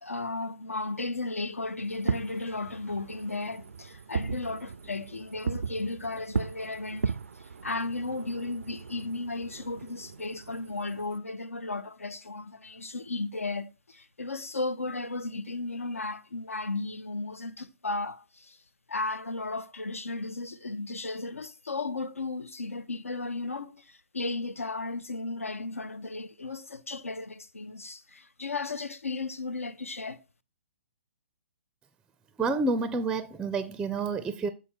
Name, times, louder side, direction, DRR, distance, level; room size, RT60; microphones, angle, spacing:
voice 1, 0.0-18.6 18.9-30.2, left 3 dB, 85° left, 0.7 m, -35 dB
Fireworks, 1.9-11.2, right 5 dB, 75° right, 0.4 m, -37 dB
voice 2, 32.4-34.5, right 3 dB, 10° right, 0.4 m, -29 dB
7.1 x 4.6 x 4.4 m
figure-of-eight pair, 125°, 7 cm